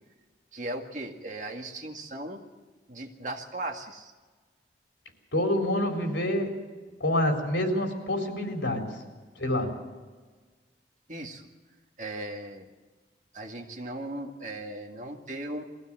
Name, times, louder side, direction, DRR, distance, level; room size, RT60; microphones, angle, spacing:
voice 1, 0.5-2.4 2.9-4.1 11.1-11.4 12.0-12.7 13.3-15.6, right 1 dB, 40° right, 3 dB, 2.1 m, -37 dB
voice 2, 5.3-6.6 7.0-8.9 9.4-9.7, left 1 dB, 80° left, 3 dB, 4.0 m, -27 dB
22.0 x 16.0 x 7.7 m, 1.4 s
head